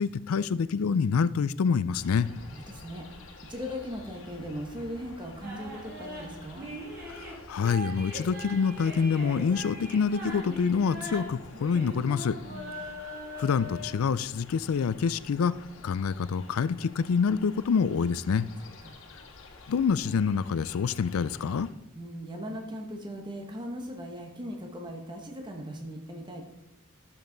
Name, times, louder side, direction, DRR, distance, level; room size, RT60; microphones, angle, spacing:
voice 1, 0.0-2.3 7.2-12.4 13.4-15.5 15.8-18.5 19.7-21.7, left 6 dB, 85° left, 17 dB, 0.4 m, -26 dB
sound 1, 1.9-21.7, left 3 dB, 65° left, 1.5 m, -50 dB
voice 2, 2.3-3.0 3.5-6.7 12.5-12.8 18.8-19.0 21.9-26.4, equal, 20° right, 2 dB, 1.0 m, -39 dB
sound 2, 5.4-13.9, equal, 50° right, 2.6 m, -41 dB
12.5 x 7.2 x 3.9 m, 1.0 s
head